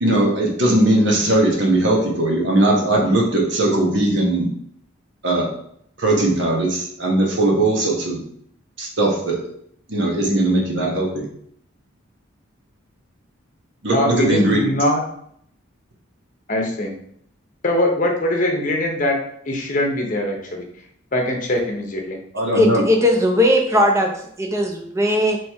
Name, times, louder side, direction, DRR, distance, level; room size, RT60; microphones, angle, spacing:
voice 1, 0.0-4.5 5.2-5.5 6.0-8.2 8.8-9.5 9.9-11.3 13.8-14.6 22.3-22.8, right 1 dB, 60° right, -1 dB, 1.0 m, -19 dB
voice 2, 13.9-15.0 16.5-16.9 17.6-19.2 19.5-20.6 21.1-22.2, left 1 dB, 40° left, 2 dB, 0.8 m, -22 dB
voice 3, 22.5-24.1 24.4-25.4, left 1 dB, 15° right, 2 dB, 0.6 m, -18 dB
3.4 x 3.2 x 4.4 m, 0.68 s
head